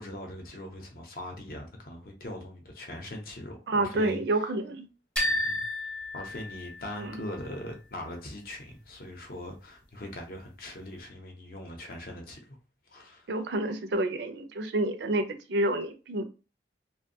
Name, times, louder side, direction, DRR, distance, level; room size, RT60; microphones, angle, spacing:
voice 1, 0.0-4.4 5.2-5.6 6.1-12.6 12.9-13.3, left 1 dB, 55° left, 0.7 m, -41 dB
voice 2, 3.7-4.9 7.0-7.2 13.3-16.2, right 2 dB, 75° right, 0.4 m, -29 dB
sound 1, 5.2-7.1, left 1 dB, 5° left, 0.5 m, -31 dB
2.5 x 2.2 x 2.7 m
head